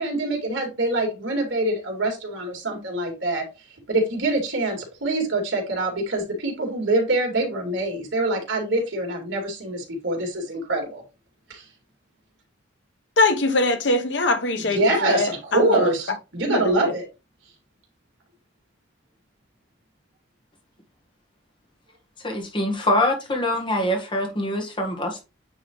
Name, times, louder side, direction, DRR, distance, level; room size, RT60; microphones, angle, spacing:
voice 1, 0.0-3.4 3.9-11.0 11.5-11.6 14.7-17.0, right 2 dB, 85° right, 2.7 m, -25 dB
voice 2, 13.2-15.9 16.5-16.9, left 2 dB, 70° left, 1.0 m, -22 dB
voice 3, 22.2-25.2, left 1 dB, 25° left, 1.5 m, -24 dB
9.0 x 3.6 x 3.1 m
head